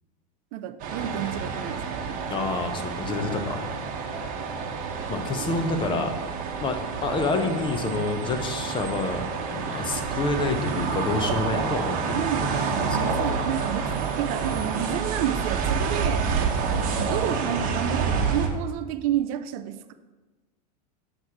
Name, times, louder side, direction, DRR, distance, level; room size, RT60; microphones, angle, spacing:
voice 1, 0.5-2.0 5.9-6.2 12.1-16.4 17.0-19.9, right 11 dB, 60° right, 10 dB, 0.5 m, -30 dB
sound 1, 0.8-18.5, right 5 dB, 40° right, 1.0 m, -28 dB
voice 2, 2.3-3.6 5.1-6.1 6.6-13.2 16.4-16.5, left 3 dB, 25° left, 6 dB, 0.8 m, -28 dB
7.8 x 3.2 x 5.8 m, 1.2 s
hypercardioid pair, 115°, 21 cm